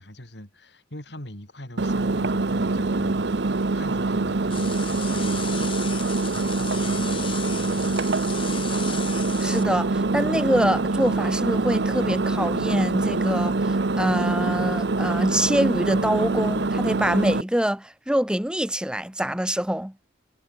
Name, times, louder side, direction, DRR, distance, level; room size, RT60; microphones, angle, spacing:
voice 1, 0.0-8.0, left 1 dB, 65° left, 4.4 m, -42 dB
Engine, 1.8-17.4, right 3 dB, 65° right, 0.8 m, -24 dB
sound 1, 4.5-9.6, left 9 dB, 30° left, 0.7 m, -37 dB
voice 2, 9.4-19.9, equal, 5° right, 0.8 m, -25 dB
head